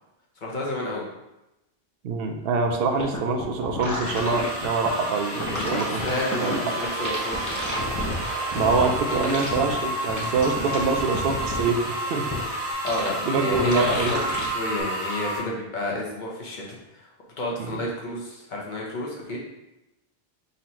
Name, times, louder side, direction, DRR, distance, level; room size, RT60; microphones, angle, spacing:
voice 1, 0.4-1.0 5.5-7.5 12.8-17.1 17.4-19.4, left 1 dB, 50° left, -3 dB, 1.1 m, -30 dB
voice 2, 2.0-6.1 6.4-6.8 8.5-12.4 13.3-14.1 17.6-17.8, right 4 dB, 70° right, 4 dB, 0.8 m, -25 dB
sound 1, 2.7-2.8 3.0-4.9 5.4-6.6 6.8-8.2 8.5-9.7 10.1-11.7 12.3-12.4 12.9-13.1 13.5-14.5 14.8-14.9, left 1 dB, 20° left, 0.7 m, -31 dB
sound 2, 4.0-15.4, right 1 dB, 25° right, 0.9 m, -31 dB
sound 3, 4.9-12.7, right 1 dB, 85° right, 1.7 m, -38 dB
4.0 x 2.8 x 4.3 m, 0.94 s
omnidirectional pair, 1.0 m